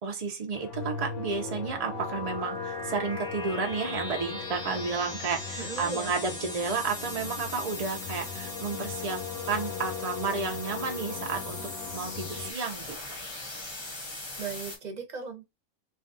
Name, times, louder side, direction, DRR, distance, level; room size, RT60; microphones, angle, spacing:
voice 1, 0.0-11.6 11.9-13.0, right 5 dB, 65° right, 0.3 m, -32 dB
sound 1, 0.5-12.5, left 7 dB, 75° left, 1.1 m, -39 dB
sound 2, 0.7-14.8, left 2 dB, 25° left, 0.7 m, -39 dB
voice 2, 5.6-6.1 14.4-15.4, right 5 dB, 40° right, 0.8 m, -37 dB
3.3 x 2.3 x 2.5 m
omnidirectional pair, 1.5 m